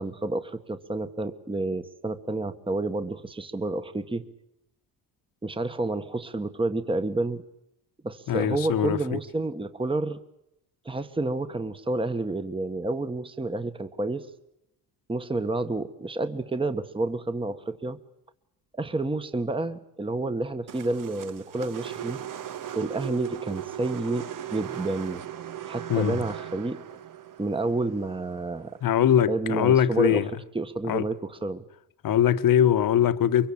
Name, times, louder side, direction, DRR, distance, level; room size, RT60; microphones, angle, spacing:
voice 1, 0.0-4.2 5.4-7.4 8.0-10.2 10.8-14.3 15.1-18.0 18.7-22.2 22.7-25.2 25.7-26.8 27.4-28.8 29.3-30.2 30.5-31.6, right 2 dB, 15° right, 1.5 m, -29 dB
voice 2, 8.3-9.2 25.9-26.2 28.8-30.3 30.9-31.1 32.0-33.5, left 10 dB, 60° left, 1.5 m, -22 dB
sound 1, 20.7-28.9, right 10 dB, 55° right, 1.4 m, -38 dB
24.0 x 23.0 x 8.8 m
cardioid pair, 90°, 39 cm